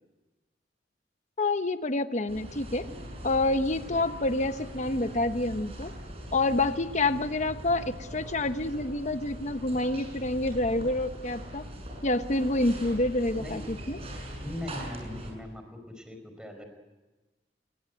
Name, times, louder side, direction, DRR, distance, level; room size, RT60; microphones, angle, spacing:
voice 1, 1.4-2.9 3.2-5.9 6.3-11.7 12.0-14.0, left 2 dB, 40° left, 10 dB, 1.0 m, -28 dB
sound 1, 2.3-15.3, equal, 35° right, 6.6 m, -41 dB
voice 2, 14.4-16.7, left 1 dB, 5° right, 6 dB, 5.0 m, -40 dB
28.0 x 22.0 x 9.4 m, 1.2 s
head